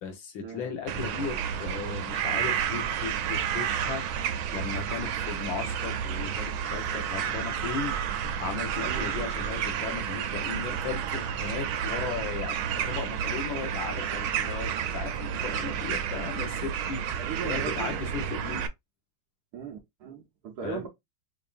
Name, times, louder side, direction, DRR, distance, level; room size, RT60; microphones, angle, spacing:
voice 1, 0.0-4.0 4.5-7.9 8.4-17.0 17.4-18.7 20.6-20.9, left 6 dB, 75° left, 1.7 m, -36 dB
sound 1, 0.9-18.7, right 8 dB, 85° right, 1.4 m, -31 dB
voice 2, 8.8-9.1 17.2-17.9 19.5-20.9, right 8 dB, 65° right, 1.0 m, -38 dB
5.1 x 2.6 x 2.4 m
omnidirectional pair, 2.2 m